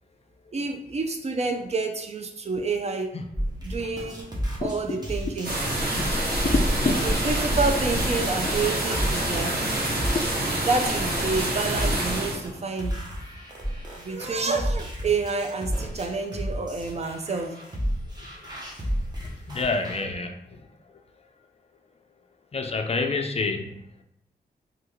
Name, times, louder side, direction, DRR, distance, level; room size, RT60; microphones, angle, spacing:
voice 1, 0.5-3.1 3.6-4.3 4.6-5.5 7.0-9.6 10.6-13.0 14.0-17.6, right 4 dB, 40° right, 5 dB, 0.4 m, -28 dB
sound 1, 3.3-20.0, equal, 25° right, 0.8 m, -32 dB
voice 2, 4.6-5.0 6.0-6.1 6.4-7.0 10.1-10.2 19.5-20.7 22.5-23.7, left 3 dB, 40° left, 6 dB, 0.4 m, -27 dB
sound 2, 5.4-12.4, right 1 dB, 70° right, 1.0 m, -26 dB
3.4 x 2.3 x 3.0 m, 0.74 s
wide cardioid pair, 90°, 17 cm